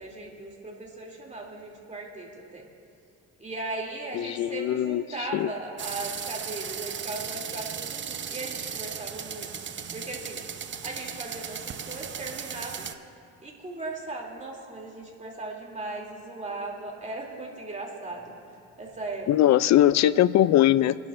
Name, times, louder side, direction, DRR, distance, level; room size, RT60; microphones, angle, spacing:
voice 1, 0.0-2.6 3.4-9.5 9.9-10.4 10.8-12.9 13.4-18.3 18.8-19.6, right 2 dB, 25° right, -2 dB, 3.0 m, -37 dB
voice 2, 4.1-5.5 19.3-21.0, left 12 dB, 65° left, 17 dB, 0.4 m, -21 dB
sound 1, 5.8-12.9, right 7 dB, 40° right, 0.7 m, -36 dB
26.0 x 11.5 x 2.6 m, 2.5 s
cardioid pair, 90°, 30 cm